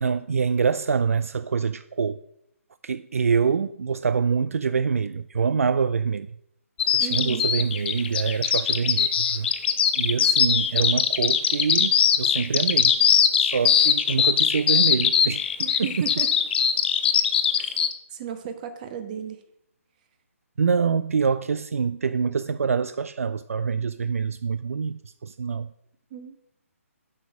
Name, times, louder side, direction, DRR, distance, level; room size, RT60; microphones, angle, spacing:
voice 1, 0.0-2.2 2.8-6.4 6.9-9.5 10.0-13.0 13.4-15.5 15.8-16.1 20.6-25.7, right 5 dB, 70° right, 0.3 m, -25 dB
Bird vocalization bird call bird song, 6.8-17.9, left 8 dB, 40° left, 0.8 m, -21 dB
voice 2, 7.0-7.5 15.6-16.3 17.6-17.7 18.1-19.4 26.1-26.4, right 8 dB, 35° right, 1.1 m, -34 dB
7.8 x 5.5 x 5.9 m
figure-of-eight pair, 140°, 8 cm